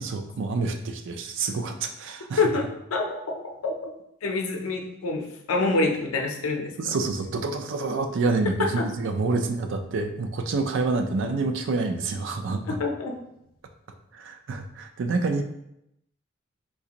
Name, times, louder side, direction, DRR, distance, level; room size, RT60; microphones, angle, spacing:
voice 1, 0.0-2.5 6.8-12.8 14.1-15.4, right 3 dB, 60° right, 6 dB, 0.4 m, -27 dB
voice 2, 2.4-3.9 4.2-6.7 12.8-13.2, left 3 dB, 90° left, 3 dB, 0.5 m, -26 dB
3.9 x 2.5 x 2.8 m, 0.81 s
head